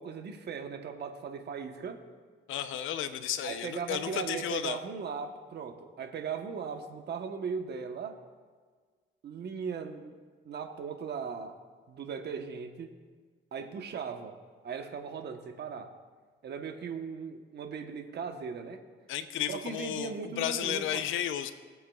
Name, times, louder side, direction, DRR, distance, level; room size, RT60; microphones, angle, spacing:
voice 1, 0.0-2.0 3.4-8.2 9.2-10.1 10.4-11.6 11.9-12.9 13.5-14.3 14.6-15.9 16.4-18.8 19.5-21.1, right 6 dB, 60° right, 5 dB, 1.1 m, -38 dB
voice 2, 2.5-4.8 19.1-21.5, left 10 dB, 85° left, 11 dB, 0.7 m, -33 dB
20.0 x 8.4 x 2.4 m, 1.6 s
cardioid pair, 90°, 20 cm